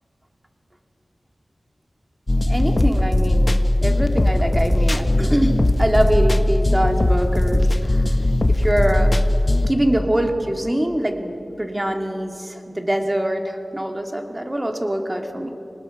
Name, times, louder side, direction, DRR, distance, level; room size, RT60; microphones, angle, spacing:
sound 1, 2.3-9.7, left 1 dB, 40° left, 1.2 m, -19 dB
voice 1, 2.4-3.5 3.8-9.1 9.7-15.5, right 1 dB, 20° right, 3 dB, 2.5 m, -24 dB
25.0 x 19.5 x 5.9 m, 2.9 s
cardioid pair, 45°, 0 cm